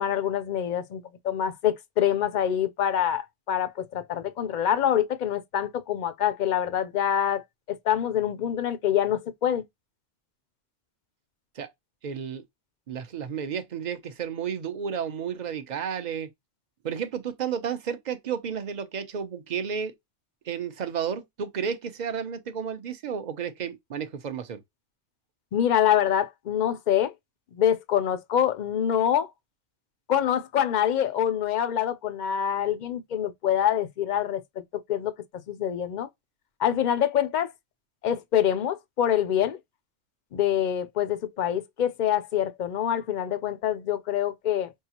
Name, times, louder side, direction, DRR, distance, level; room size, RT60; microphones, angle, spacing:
voice 1, 0.0-9.6 25.5-27.1 27.5-29.3 30.1-34.4 34.7-35.1 35.5-36.1 36.6-37.5 38.0-39.6 40.3-44.7, left 10 dB, 55° left, 0.5 m, -25 dB
voice 2, 12.0-12.4 12.9-16.3 16.8-19.9 20.4-24.6, right 7 dB, 45° right, 0.6 m, -32 dB
5.5 x 2.4 x 2.8 m
omnidirectional pair, 1.2 m